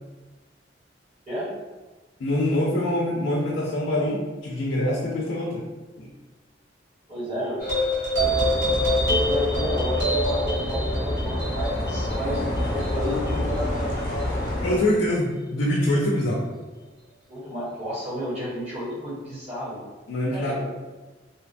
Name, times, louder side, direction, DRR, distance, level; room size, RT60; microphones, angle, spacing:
voice 1, 2.2-5.6 6.0-6.1 14.6-16.4 20.1-20.6, left 1 dB, 90° left, -3 dB, 0.4 m, -24 dB
voice 2, 7.1-7.6 9.0-12.4 12.7-14.4 17.3-19.8 20.3-20.6, equal, 35° right, -10 dB, 0.9 m, -32 dB
sound 1, 7.6-14.4, equal, 80° right, 1.1 m, -26 dB
sound 2, 8.2-14.8, left 1 dB, 50° left, 0.6 m, -28 dB
2.8 x 2.1 x 2.5 m, 1.2 s
head